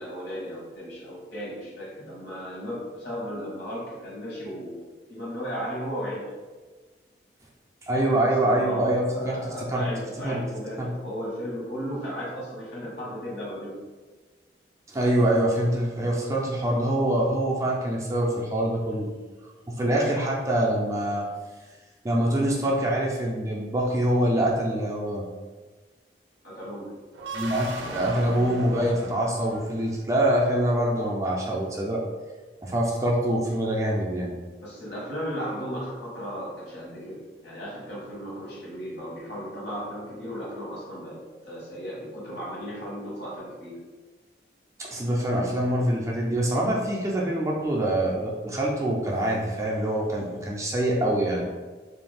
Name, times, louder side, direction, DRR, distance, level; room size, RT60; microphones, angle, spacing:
voice 1, 0.0-4.8 5.1-6.4 7.9-13.8 19.9-20.1 26.4-26.9 34.6-43.8, equal, 70° left, -5 dB, 1.2 m, -35 dB
voice 2, 7.9-9.9 10.2-10.4 10.8-10.9 14.9-19.1 19.7-21.2 22.0-25.2 27.3-32.0 32.6-34.3 44.8-51.5, right 1 dB, 15° right, -3 dB, 0.3 m, -25 dB
sound 1, 27.1-30.1, right 2 dB, 85° right, 0.4 m, -37 dB
2.5 x 2.3 x 3.3 m, 1.3 s
head